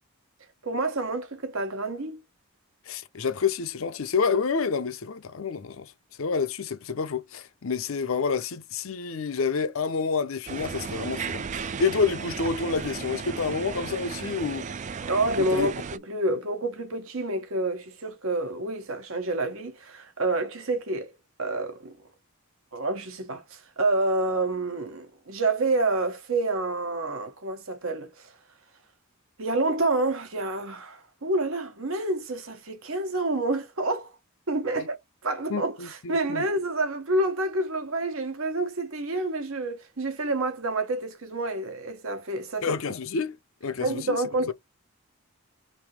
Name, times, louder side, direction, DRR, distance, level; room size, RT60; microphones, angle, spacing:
voice 1, 0.6-2.2 15.0-21.1 21.4-22.0 22.7-28.3 29.4-34.1 34.5-35.0 35.2-42.8 43.8-44.5, right 2 dB, 70° right, 1.1 m, -28 dB
voice 2, 2.9-5.9 6.2-14.7 15.4-15.7 34.8-34.9 35.5-36.5 42.6-43.4 43.6-44.2, left 5 dB, 65° left, 0.6 m, -28 dB
sound 1, 10.5-16.0, right 5 dB, 35° right, 0.3 m, -35 dB
3.5 x 2.7 x 4.7 m
head